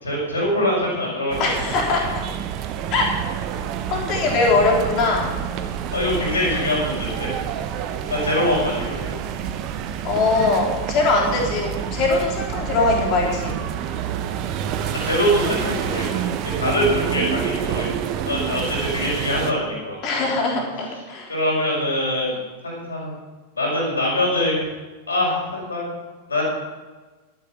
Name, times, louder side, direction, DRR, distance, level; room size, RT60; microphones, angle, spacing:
voice 1, 0.0-1.5 5.9-7.4 8.1-9.2 15.0-17.9 18.3-20.2 21.3-22.4 22.6-23.2 23.5-24.6 25.1-25.9 26.3-26.4, left 1 dB, 75° left, -4 dB, 5.1 m, -23 dB
sound 1, 1.3-19.5, right 9 dB, 40° right, 0.9 m, -28 dB
voice 2, 1.4-2.2 2.9-3.1 3.9-5.3 10.0-13.6 20.0-21.3, left 3 dB, 40° left, -1 dB, 3.5 m, -21 dB
11.5 x 10.0 x 6.1 m, 1.3 s
figure-of-eight pair, 90°, 0 cm